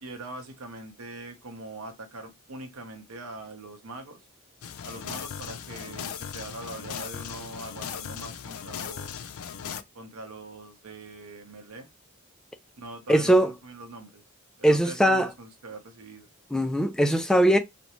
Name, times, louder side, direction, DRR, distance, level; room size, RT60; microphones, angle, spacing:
voice 1, 0.0-4.2 4.8-9.3 9.9-11.9 12.8-14.2 14.6-16.3, right 2 dB, 90° right, 0.8 m, -42 dB
sound 1, 4.6-9.8, left 8 dB, 80° left, 0.4 m, -38 dB
voice 2, 13.1-13.5 14.6-15.3 16.5-17.6, right 1 dB, 5° left, 0.3 m, -20 dB
2.6 x 2.1 x 2.9 m
head